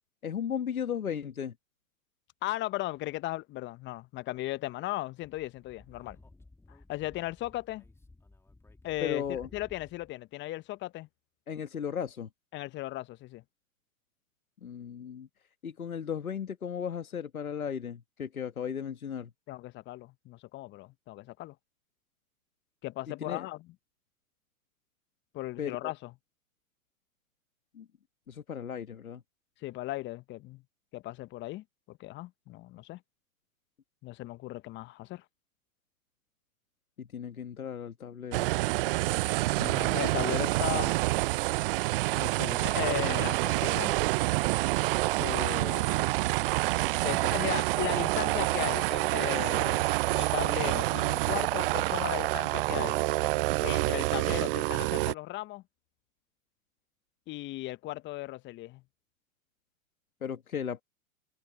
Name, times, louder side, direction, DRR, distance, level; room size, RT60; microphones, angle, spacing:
voice 1, 0.2-1.5 9.0-9.5 11.5-12.3 14.6-19.3 23.1-23.5 25.6-25.9 27.7-27.9 28.3-29.2 37.0-38.5 42.2-42.6 60.2-60.8, left 8 dB, 85° left, 1.5 m, -36 dB
voice 2, 2.4-6.2 6.7-7.8 8.8-11.1 12.5-13.4 19.5-21.5 22.8-23.6 25.3-26.1 29.6-30.6 30.9-33.0 34.0-35.2 39.6-41.0 42.6-44.0 45.2-46.2 47.0-53.0 53.6-55.6 57.3-58.8, left 17 dB, 25° left, 0.8 m, -37 dB
Speech / Wind, 5.6-10.1, left 2 dB, 5° left, 2.7 m, -56 dB
sound 1, 38.3-55.1, right 20 dB, 45° right, 0.5 m, -27 dB
hypercardioid pair, 105°, 41 cm